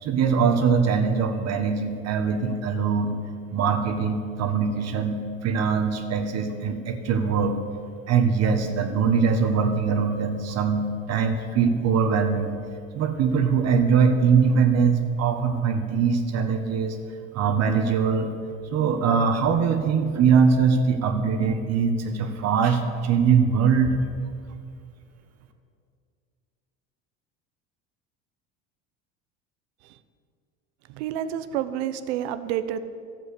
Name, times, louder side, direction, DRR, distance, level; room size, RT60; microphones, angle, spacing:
voice 1, 0.0-3.2 3.5-7.5 8.1-12.5 12.9-17.0 17.3-18.3 18.7-23.9, right 6 dB, 50° right, 6 dB, 1.5 m, -22 dB
voice 2, 30.9-32.8, right 10 dB, 75° right, 12 dB, 0.9 m, -29 dB
12.5 x 7.7 x 8.4 m, 2.3 s
supercardioid pair, 95°, 33 cm